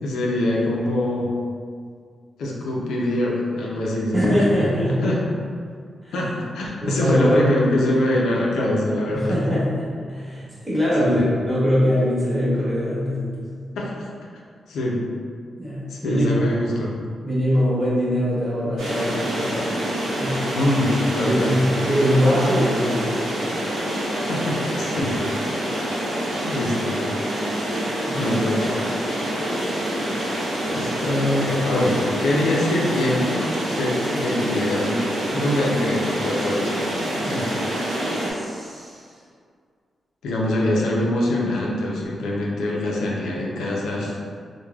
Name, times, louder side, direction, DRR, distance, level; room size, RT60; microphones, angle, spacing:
voice 1, 0.0-1.4 2.4-4.7 5.0-5.2 6.1-9.4 11.0-11.2 13.8-14.1 14.7-15.0 15.9-16.9 20.5-21.6 24.3-25.3 26.4-27.0 27.7-28.9 30.1-30.4 30.7-37.5 40.2-44.2, left 1 dB, 90° left, -3 dB, 0.4 m, -24 dB
voice 2, 4.1-5.0 6.0-6.1 6.8-7.5 9.1-13.3 15.6-16.4 17.2-19.8 20.0-20.4 21.2-23.2 28.0-28.3 38.3-39.0, equal, 15° right, -9 dB, 1.2 m, -22 dB
sound 1, 18.8-38.3, equal, 85° right, 0.7 m, -26 dB
3.1 x 2.1 x 2.2 m, 2.1 s
cardioid pair, 65°, 0 cm